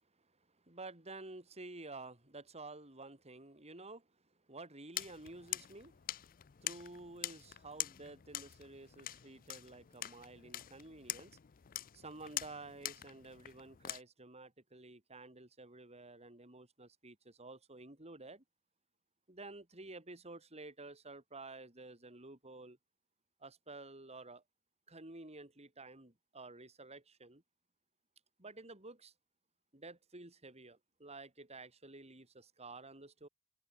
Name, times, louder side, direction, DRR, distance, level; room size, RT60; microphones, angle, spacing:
voice 1, 0.7-4.1 4.5-5.9 6.6-11.4 11.9-18.4 19.3-22.8 23.4-24.4 24.9-27.4 28.4-29.1 29.7-33.3, right 2 dB, 30° right, 3.9 m, -51 dB
sound 1, 4.9-14.0, left 13 dB, 40° left, 0.5 m, -45 dB
open air
head